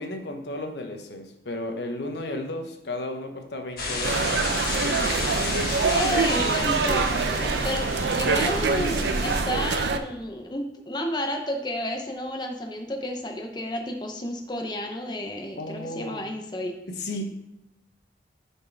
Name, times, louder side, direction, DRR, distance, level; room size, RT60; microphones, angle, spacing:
voice 1, 0.0-5.5 8.2-8.4 15.6-16.2 16.9-17.3, left 1 dB, 75° left, 4 dB, 0.9 m, -34 dB
sound 1, 3.8-9.4, left 2 dB, 55° left, 1.3 m, -31 dB
sound 2, 4.0-10.0, right 4 dB, 80° right, 0.5 m, -25 dB
voice 2, 5.8-16.8, left 1 dB, 25° left, 3 dB, 0.6 m, -31 dB
6.6 x 4.5 x 4.5 m, 0.88 s
head